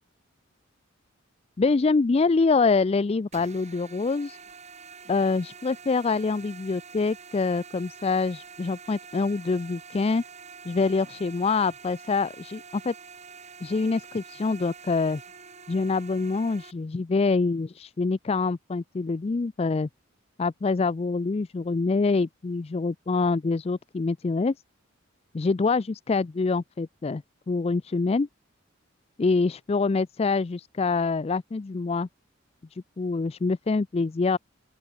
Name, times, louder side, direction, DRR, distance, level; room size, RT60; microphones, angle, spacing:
voice 1, 1.6-4.4 5.1-10.2 10.7-12.9 13.6-15.2 15.7-19.9 20.4-24.5 25.3-28.3 29.2-32.1 32.7-34.4, left 4 dB, 30° left, 0.4 m, -25 dB
sound 1, 3.3-16.7, right 5 dB, 35° right, 5.4 m, -46 dB
open air
head